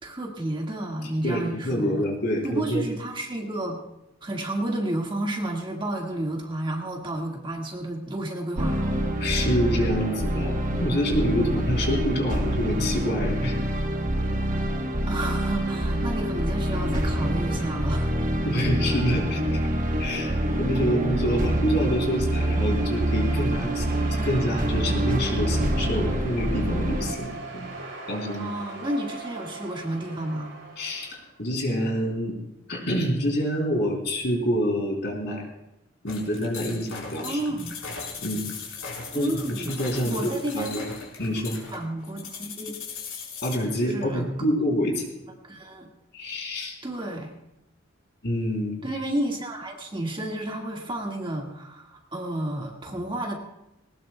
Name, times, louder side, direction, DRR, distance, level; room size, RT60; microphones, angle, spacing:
voice 1, 0.0-2.0 2.4-3.8 4.2-8.9 15.1-18.1 28.4-30.6 37.2-37.8 39.1-40.8 41.7-42.8 43.8-44.3 45.4-45.9 46.8-47.3 48.8-53.4, right 1 dB, 25° right, 0 dB, 1.8 m, -31 dB
voice 2, 1.2-2.9 9.2-13.6 18.4-19.6 20.0-24.0 24.2-27.7 28.1-28.5 30.8-32.4 32.7-35.4 36.0-37.6 38.2-38.4 39.1-39.4 39.7-40.3 40.5-40.9 41.2-41.6 43.4-45.1 46.1-46.8 48.2-48.9, equal, 60° left, 0 dB, 3.5 m, -27 dB
sound 1, 8.6-27.1, right 1 dB, 45° right, 1.1 m, -26 dB
sound 2, 21.6-31.3, right 3 dB, 65° right, 6.6 m, -41 dB
sound 3, 36.1-43.6, left 5 dB, 85° left, 4.3 m, -38 dB
20.0 x 19.0 x 2.3 m, 0.86 s
head